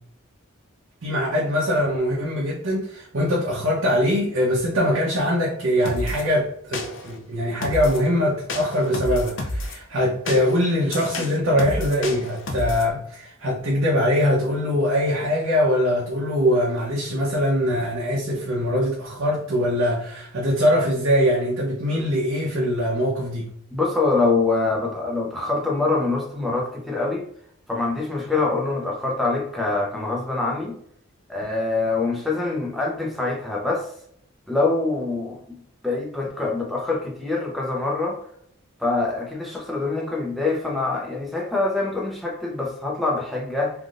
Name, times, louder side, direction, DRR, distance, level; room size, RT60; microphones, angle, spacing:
voice 1, 1.0-23.5, equal, 70° right, 0.7 m, -22 dB
sound 1, 5.9-6.2 6.7-7.2 7.6-8.1 8.5-9.8 10.3-12.9, left 2 dB, 60° left, 0.4 m, -30 dB
voice 2, 23.7-27.2 27.7-30.8 31.3-33.9 34.5-35.6 35.8-38.2 38.8-43.7, left 3 dB, ahead, 0.6 m, -24 dB
3.4 x 2.5 x 2.4 m
head